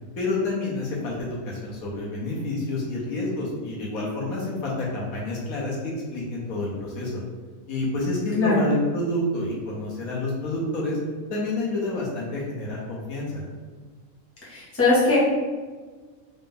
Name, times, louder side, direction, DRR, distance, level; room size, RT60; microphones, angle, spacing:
voice 1, 0.2-7.2 7.7-11.0 11.3-13.4, left 2 dB, 75° left, -3 dB, 1.4 m, -28 dB
voice 2, 14.4-15.2, left 2 dB, 10° left, -8 dB, 1.0 m, -21 dB
3.9 x 2.6 x 3.7 m, 1.4 s
omnidirectional pair, 1.5 m